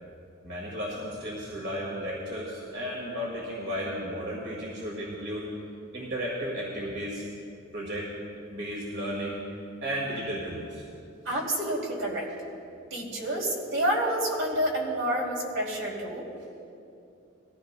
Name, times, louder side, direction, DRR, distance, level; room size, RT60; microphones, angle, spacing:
voice 1, 0.4-5.5 5.9-7.2 7.7-8.1 8.5-9.4 9.8-10.9, equal, 55° right, -4 dB, 1.9 m, -34 dB
voice 2, 11.2-12.3 12.9-16.2, right 1 dB, 70° right, -2 dB, 2.7 m, -28 dB
21.0 x 14.5 x 2.2 m, 2.7 s
head